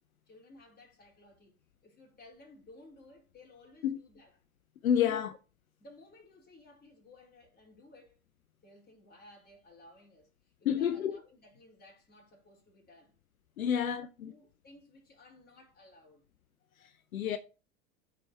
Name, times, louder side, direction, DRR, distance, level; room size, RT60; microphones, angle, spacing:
voice 1, 0.3-1.5 1.8-4.3 5.0-5.2 5.8-8.2 8.6-13.1 13.6-14.0 14.2-16.3, left 2 dB, 25° left, 4.6 m, -57 dB
voice 2, 4.8-5.3 10.6-11.2 13.6-14.3 16.8-17.4, left 9 dB, 80° left, 0.7 m, -29 dB
14.0 x 4.9 x 3.3 m
figure-of-eight pair, 85°, 42 cm